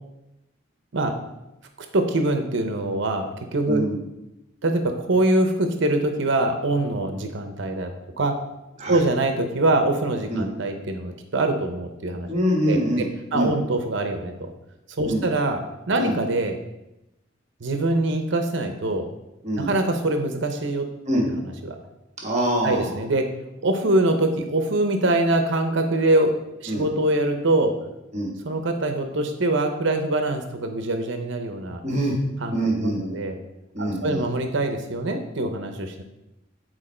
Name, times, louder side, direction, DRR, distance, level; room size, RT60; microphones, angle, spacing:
voice 1, 1.9-3.8 4.6-7.9 8.2-8.4 8.9-12.3 12.7-14.5 15.0-16.6 17.6-19.1 19.6-20.9 21.2-21.3 21.6-21.8 22.6-23.3 23.6-27.8 28.4-31.8 32.4-33.4 33.8-36.0, right 2 dB, 70° right, 6 dB, 0.8 m, -24 dB
voice 2, 3.7-4.0 8.8-9.0 10.3-10.5 12.3-13.1 13.3-13.5 15.0-15.2 16.0-16.1 19.4-19.7 21.1-21.2 22.2-22.9 26.7-26.9 28.1-28.3 31.8-32.1 32.5-33.2 33.7-34.2, right 1 dB, 35° right, -1 dB, 1.4 m, -24 dB
9.0 x 4.5 x 4.3 m, 0.92 s
head